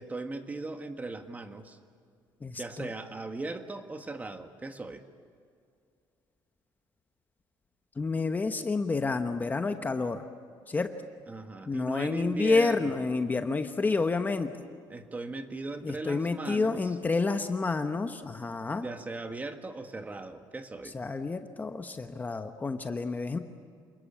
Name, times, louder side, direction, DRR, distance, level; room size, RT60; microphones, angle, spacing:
voice 1, 0.0-1.8 2.6-5.0 11.3-13.1 14.9-17.0 18.8-21.0, right 2 dB, 20° right, 7 dB, 1.7 m, -38 dB
voice 2, 2.4-2.9 8.0-10.2 10.7-10.9 11.7-14.5 15.8-18.8 20.9-23.4, left 3 dB, 20° left, 7 dB, 1.1 m, -29 dB
28.0 x 20.5 x 8.8 m, 2.2 s
cardioid pair, 125°, 8 cm